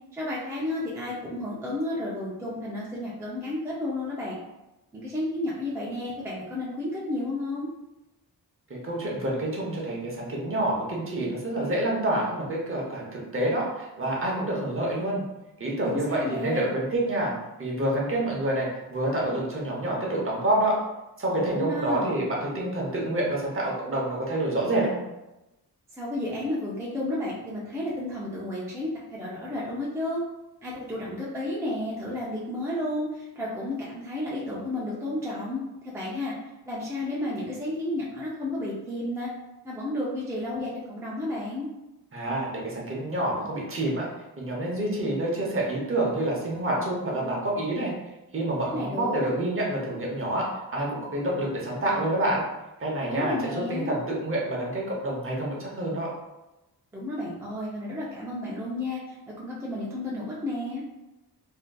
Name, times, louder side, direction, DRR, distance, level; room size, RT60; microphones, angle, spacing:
voice 1, 0.1-4.4 4.9-7.7 15.8-16.7 21.5-22.2 25.9-30.2 30.6-36.3 36.7-39.3 39.6-41.7 48.7-49.3 53.1-54.0 56.9-60.8, left 1 dB, 10° right, -6 dB, 0.4 m, -32 dB
voice 2, 8.7-15.2 15.6-17.3 17.6-20.8 21.2-25.0 42.1-44.1 44.4-47.9 48.3-52.4 52.8-56.1, right 1 dB, 35° right, -3 dB, 0.7 m, -28 dB
3.6 x 2.6 x 2.2 m, 0.99 s
wide cardioid pair, 180°, 37 cm